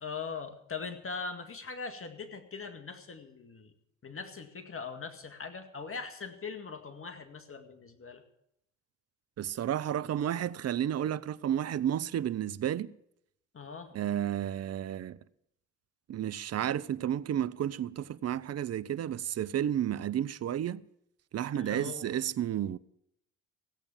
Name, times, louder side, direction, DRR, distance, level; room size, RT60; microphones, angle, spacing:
voice 1, 0.0-3.7 4.0-8.2 13.5-13.9 21.5-22.1, left 5 dB, 35° left, 2.0 m, -41 dB
voice 2, 9.4-12.9 13.9-15.2 16.1-20.8 21.3-22.8, right 10 dB, 40° right, 0.6 m, -32 dB
16.5 x 8.5 x 7.1 m
hypercardioid pair, 60°, 38 cm